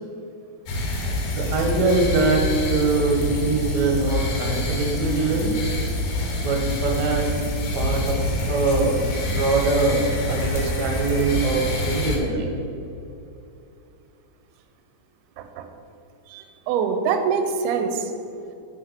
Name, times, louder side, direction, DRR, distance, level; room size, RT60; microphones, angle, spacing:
sound 1, 0.7-12.2, left 1 dB, 70° left, 1.6 m, -26 dB
voice 1, 1.3-5.5 6.4-7.3 7.7-8.2 8.5-12.6, right 3 dB, 65° right, 1 dB, 1.9 m, -23 dB
voice 2, 15.4-15.7 16.3-18.1, right 6 dB, 90° right, 6 dB, 2.5 m, -25 dB
7.6 x 4.9 x 5.7 m, 2.7 s
omnidirectional pair, 4.4 m